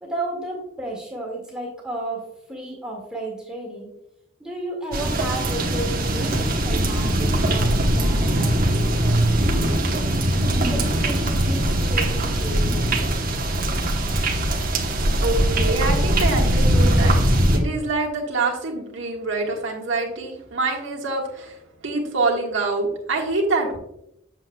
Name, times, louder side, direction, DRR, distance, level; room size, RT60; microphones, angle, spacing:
voice 1, 0.0-3.9 4.4-10.2 10.7-13.1, right 1 dB, 5° right, -4 dB, 1.9 m, -33 dB
sound 1, 4.9-17.6, right 1 dB, 45° right, 1.1 m, -21 dB
voice 2, 15.0-21.6 21.8-23.8, right 3 dB, 65° right, -1 dB, 1.6 m, -25 dB
7.8 x 7.3 x 2.3 m, 0.79 s
head